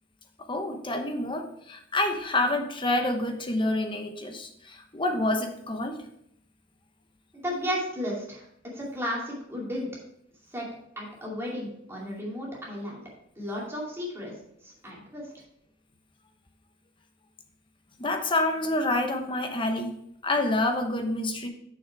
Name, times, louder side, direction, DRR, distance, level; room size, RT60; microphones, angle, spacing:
voice 1, 0.5-6.0 18.0-19.9 20.2-21.5, left 2 dB, 25° left, 5 dB, 0.9 m, -27 dB
voice 2, 7.4-8.5 8.7-9.9 10.5-10.7 11.0-13.0 13.4-14.4 14.6-15.3, equal, 15° right, -4 dB, 2.5 m, -33 dB
7.0 x 6.2 x 4.6 m, 0.72 s
head